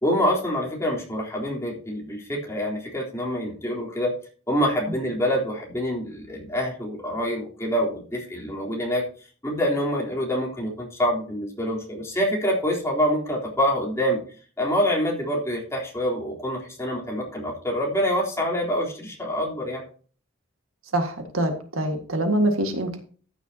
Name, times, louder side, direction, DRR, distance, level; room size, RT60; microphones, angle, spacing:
voice 1, 0.0-4.1 4.5-14.2 14.6-19.8, equal, 15° left, -3 dB, 3.6 m, -26 dB
voice 2, 20.9-23.0, right 1 dB, 90° right, 5 dB, 1.9 m, -24 dB
14.0 x 9.5 x 2.9 m, 0.41 s
head